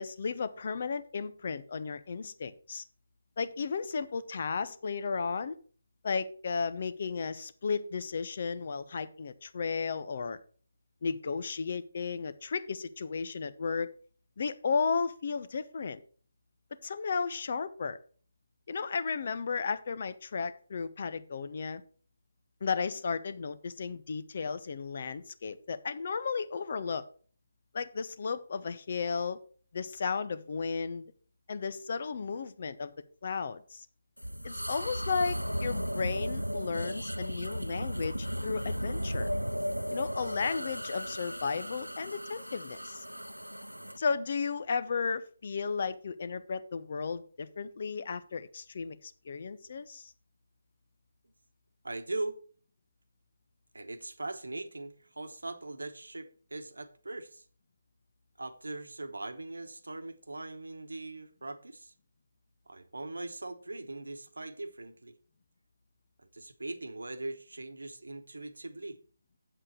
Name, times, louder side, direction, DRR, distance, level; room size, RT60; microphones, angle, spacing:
voice 1, 0.0-2.8 3.4-5.6 6.0-10.4 11.0-13.9 14.4-16.0 16.8-18.0 18.7-21.8 22.6-27.0 27.7-29.4 29.7-31.1 31.5-32.9 33.2-33.9 34.4-39.3 39.9-43.0 44.0-50.1, left 5 dB, 40° left, 0.7 m, -34 dB
sound 1, 34.2-44.0, equal, 85° right, 0.3 m, -35 dB
voice 2, 51.8-52.4 53.7-57.4 58.4-61.9 62.7-65.2 66.2-69.0, right 2 dB, 65° right, 1.1 m, -40 dB
8.1 x 7.7 x 4.6 m
figure-of-eight pair, 150°, 0 cm